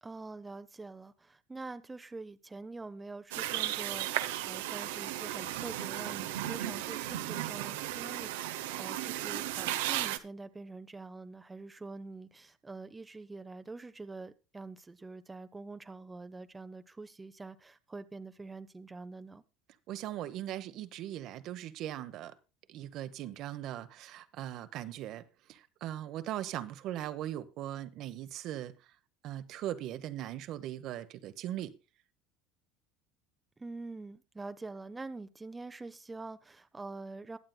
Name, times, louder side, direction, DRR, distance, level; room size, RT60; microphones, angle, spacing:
voice 1, 0.0-19.4 33.6-37.4, right 3 dB, 15° right, 0.7 m, -45 dB
sound 1, 3.3-10.2, right 13 dB, 85° right, 0.8 m, -35 dB
voice 2, 19.9-22.3 22.7-25.2 25.5-28.7 29.2-31.7, right 12 dB, 60° right, 0.9 m, -39 dB
21.5 x 7.4 x 2.2 m
supercardioid pair, 105°, 0 cm